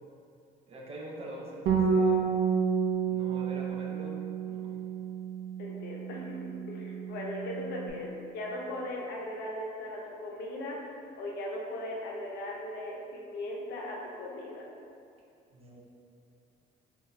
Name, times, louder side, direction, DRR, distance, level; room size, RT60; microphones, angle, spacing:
voice 1, 0.7-2.3 3.1-4.2 4.4-4.7 15.5-15.8, right 1 dB, 35° right, -3 dB, 0.6 m, -44 dB
Bass guitar, 1.7-7.9, right 6 dB, 90° right, 0.4 m, -30 dB
voice 2, 5.6-14.6, left 1 dB, 75° left, -2 dB, 0.6 m, -38 dB
3.7 x 2.3 x 2.6 m, 2.4 s
cardioid pair, 110°, 17 cm